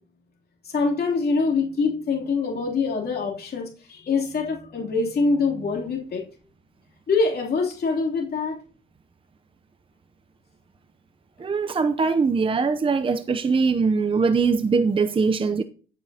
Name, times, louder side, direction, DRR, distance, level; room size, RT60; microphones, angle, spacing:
voice 1, 0.6-6.2 7.1-8.6, left 4 dB, 50° left, 3.2 m, -24 dB
voice 2, 11.4-15.6, right 4 dB, 25° right, 0.7 m, -22 dB
14.0 x 9.1 x 2.8 m
cardioid pair, 90°, 20 cm